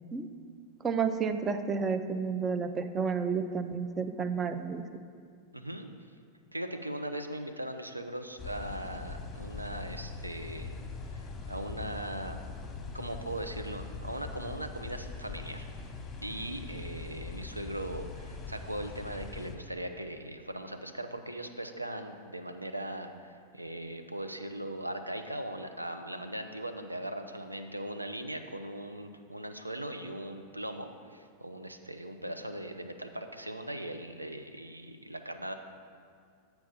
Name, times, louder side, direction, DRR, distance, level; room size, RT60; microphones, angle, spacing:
voice 1, 0.8-4.8, right 5 dB, 20° right, 9 dB, 0.4 m, -31 dB
voice 2, 5.5-5.9 6.5-10.7 11.1-12.4 12.9-15.7 16.2-35.5, right 1 dB, 85° right, 6 dB, 0.5 m, -39 dB
sound 1, 8.4-19.6, left 4 dB, 20° left, 1.0 m, -42 dB
8.4 x 4.5 x 5.4 m, 2.2 s
figure-of-eight pair, 90°, 0 cm